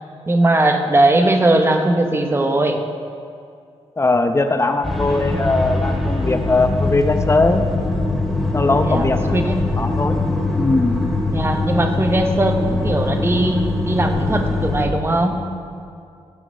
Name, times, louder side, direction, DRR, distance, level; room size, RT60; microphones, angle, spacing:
voice 1, 0.3-2.8 8.8-9.7 11.3-15.5, right 1 dB, 20° right, 5 dB, 1.1 m, -19 dB
voice 2, 4.0-7.7 8.5-9.4 9.8-10.2 10.5-11.0, left 2 dB, 25° left, 7 dB, 0.8 m, -19 dB
sound 1, 4.8-14.8, left 2 dB, ahead, 2.8 m, -22 dB
15.0 x 5.9 x 5.5 m, 2.4 s
cardioid pair, 75°, 11 cm